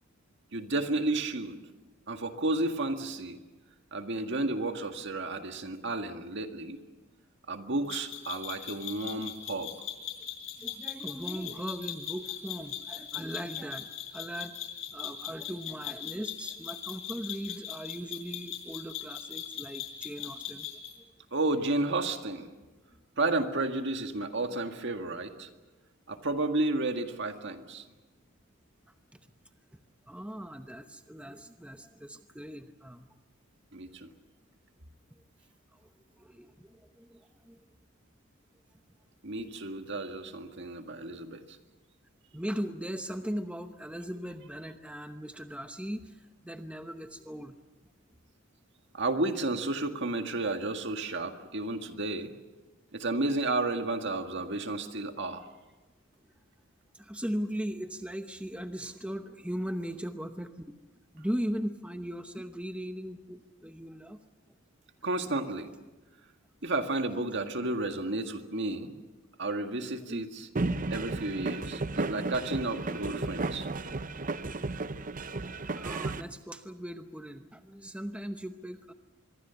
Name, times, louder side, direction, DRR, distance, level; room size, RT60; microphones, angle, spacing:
voice 1, 0.5-1.6 2.1-3.4 3.9-6.8 7.5-9.7 21.3-22.5 23.2-25.5 26.1-27.9 33.7-34.1 39.2-41.6 48.9-52.3 52.9-55.5 65.0-65.7 66.6-68.9 69.4-70.5 70.9-73.7, right 2 dB, 60° right, 6 dB, 1.9 m, -32 dB
sound 1, 7.9-21.0, left 10 dB, 70° left, 6.1 m, -40 dB
voice 2, 10.6-14.5 14.9-21.0 29.7-29.8 30.1-33.1 35.7-35.9 36.2-37.6 42.3-47.6 56.9-60.8 61.1-64.2 70.0-70.3 75.4-78.9, equal, 5° right, 7 dB, 0.8 m, -39 dB
sound 2, 70.6-76.2, right 3 dB, 40° right, 0.7 m, -33 dB
25.5 x 22.5 x 7.0 m, 1.2 s
head